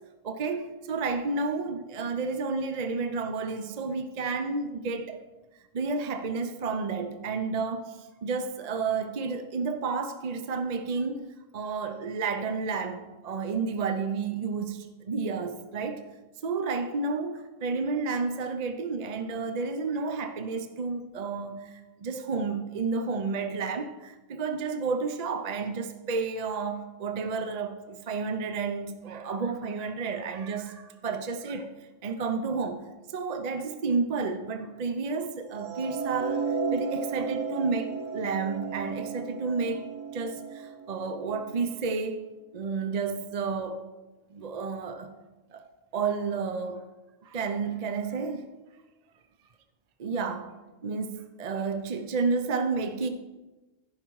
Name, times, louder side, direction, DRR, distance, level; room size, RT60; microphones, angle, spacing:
voice 1, 0.2-5.2 5.7-11.2 11.5-16.0 16.4-21.7 22.0-31.7 32.0-32.8 33.1-36.4 36.7-39.9 40.1-42.2 42.5-43.8 44.3-45.2 45.5-45.7 45.9-46.8 47.3-48.5 50.0-50.5 50.8-53.1, right 4 dB, 45° right, 0.6 m, -31 dB
sound 1, 35.6-41.8, right 5 dB, 80° right, 1.4 m, -34 dB
14.5 x 5.6 x 4.7 m
omnidirectional pair, 1.3 m